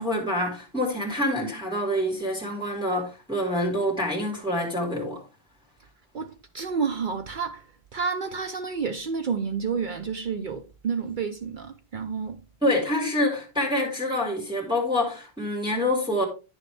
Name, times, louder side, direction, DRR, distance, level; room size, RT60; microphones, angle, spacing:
voice 1, 0.0-5.2 12.6-16.3, left 1 dB, 5° right, 2.2 m, -26 dB
voice 2, 6.1-12.4, right 5 dB, 55° right, 0.7 m, -30 dB
9.7 x 6.7 x 3.3 m
omnidirectional pair, 1.0 m